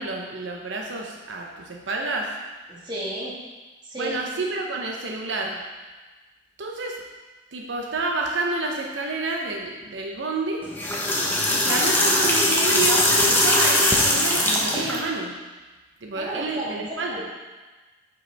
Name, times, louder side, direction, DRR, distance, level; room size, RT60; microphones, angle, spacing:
voice 1, 0.0-2.3 4.0-5.6 6.6-7.0 7.5-10.6 11.5-15.4 16.0-17.2, right 3 dB, 85° right, 1 dB, 0.8 m, -29 dB
voice 2, 2.7-3.3 3.8-4.2 16.1-16.7 17.1-17.3, right 1 dB, 25° right, -6 dB, 1.8 m, -32 dB
sound 1, 10.6-15.0, left 1 dB, 10° left, 0.9 m, -20 dB
9.5 x 5.3 x 3.4 m, 1.3 s
head